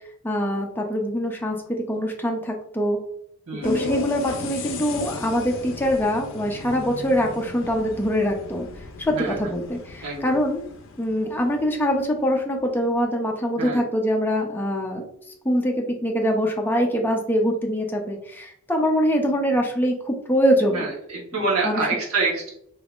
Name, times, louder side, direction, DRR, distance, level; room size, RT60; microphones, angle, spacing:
voice 1, 0.2-1.6 1.9-3.0 3.6-8.7 9.0-10.6 11.0-15.0 15.4-20.9 21.6-21.8, equal, 10° left, 1 dB, 0.4 m, -23 dB
voice 2, 3.5-3.9 9.1-9.4 10.0-10.4 13.6-13.8 20.7-22.5, right 3 dB, 80° right, -5 dB, 1.2 m, -26 dB
sound 1, 3.6-12.0, left 3 dB, 60° left, 0.5 m, -35 dB
3.4 x 3.0 x 2.4 m, 0.71 s
head